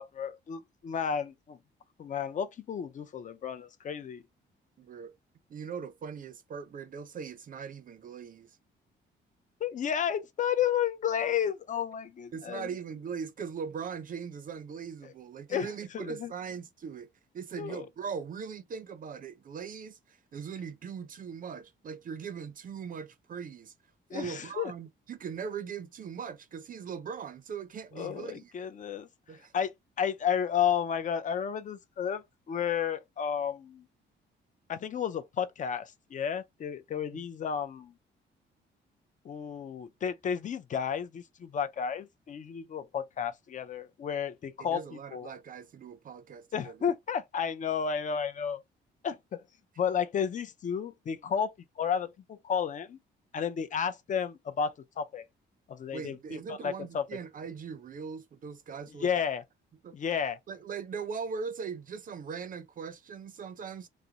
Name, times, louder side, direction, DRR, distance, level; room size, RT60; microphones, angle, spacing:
voice 1, 0.0-1.6 2.0-4.2 9.6-12.7 15.0-15.1 15.5-16.3 17.6-17.9 24.1-24.7 28.0-29.1 29.5-29.7 30.0-33.9 34.7-37.9 39.2-44.8 45.1-45.3 46.5-48.6 49.0-49.4 49.8-53.0 53.3-55.2 55.7-57.1 59.0-59.4 59.9-60.4, left 8 dB, 40° left, 0.5 m, -32 dB
voice 2, 4.8-5.1 5.5-8.6 12.3-17.1 17.3-23.7 24.1-28.5 29.3-29.5 37.1-37.2 44.6-46.8 55.9-59.1 59.8-60.0 60.5-63.9, right 6 dB, 45° right, 0.5 m, -40 dB
2.5 x 2.0 x 2.8 m
cardioid pair, 90°, 20 cm